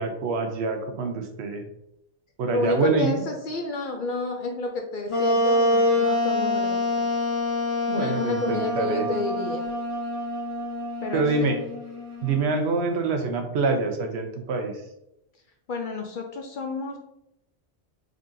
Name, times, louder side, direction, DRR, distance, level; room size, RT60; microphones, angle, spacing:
voice 1, 0.0-1.6 2.4-3.2 7.9-9.1 11.1-11.6 12.2-14.7, right 3 dB, 75° right, 5 dB, 0.9 m, -25 dB
voice 2, 2.5-7.1 7.9-9.7 11.0-11.5 15.7-17.0, left 3 dB, 60° left, 3 dB, 0.6 m, -30 dB
Wind instrument woodwind instrument, 5.1-12.5, left 1 dB, 30° left, 0.8 m, -26 dB
3.9 x 3.6 x 2.6 m, 0.83 s
omnidirectional pair, 1.1 m